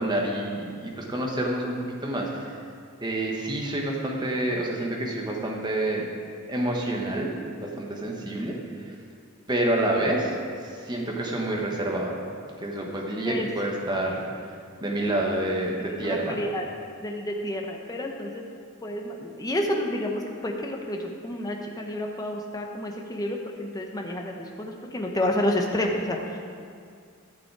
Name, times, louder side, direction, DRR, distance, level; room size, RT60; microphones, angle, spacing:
voice 1, 0.0-2.5 3.0-6.1 6.5-7.3 7.6-8.9 9.5-10.3 10.6-12.1 12.6-14.2 14.8-16.4, right 1 dB, 20° right, -1 dB, 1.2 m, -28 dB
voice 2, 13.9-14.6 15.8-16.7 17.0-18.4 18.8-26.4, left 1 dB, 15° left, 1 dB, 0.9 m, -30 dB
12.0 x 7.0 x 4.7 m, 2.3 s
head